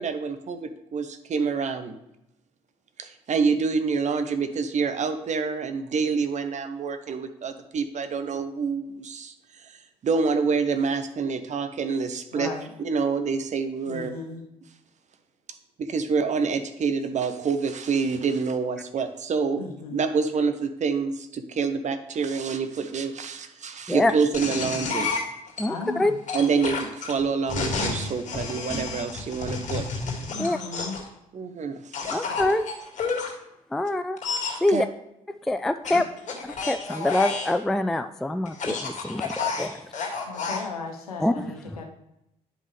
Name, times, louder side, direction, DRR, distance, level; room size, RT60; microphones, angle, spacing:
voice 1, 0.0-1.9 3.0-9.8 10.0-12.5 12.8-14.1 15.8-19.6 19.9-25.1 26.3-29.9 31.3-32.3 34.7-34.8, right 5 dB, 40° right, 8 dB, 0.8 m, -27 dB
voice 2, 12.3-12.7 13.9-14.4 19.6-20.1 25.6-26.2 30.3-31.0 40.3-41.8, left 4 dB, 85° left, 2 dB, 0.8 m, -36 dB
sound 1, 24.3-25.6 26.3-31.1 31.9-33.3 34.2-34.6 35.8-37.6 38.5-40.6, left 4 dB, 40° left, 2.1 m, -30 dB
voice 3, 25.6-26.1 30.4-30.6 32.1-32.6 33.7-34.2 34.6-34.9 35.5-36.1 36.4-39.7 41.2-41.6, left 1 dB, ahead, 10 dB, 0.3 m, -25 dB
9.9 x 5.4 x 3.2 m, 0.85 s
figure-of-eight pair, 45°, 19 cm